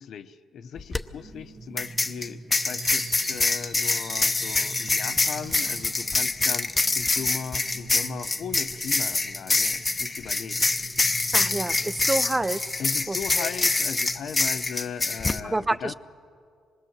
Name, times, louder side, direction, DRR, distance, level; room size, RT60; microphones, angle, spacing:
voice 1, 0.0-10.7 12.8-15.9, left 7 dB, 65° left, 10 dB, 0.9 m, -38 dB
sound 1, 0.8-1.0 1.8-15.4, left 3 dB, 20° left, 0.8 m, -25 dB
sound 2, 1.2-15.3, right 3 dB, 45° right, 1.6 m, -45 dB
Fireworks, 2.5-4.9 5.3-6.1, right 4 dB, 60° right, 1.8 m, -44 dB
voice 2, 11.3-12.6 13.1-13.5 15.4-15.9, right 2 dB, 15° right, 15 dB, 0.6 m, -28 dB
26.0 x 20.5 x 7.4 m, 2.3 s
cardioid pair, 90°, 0 cm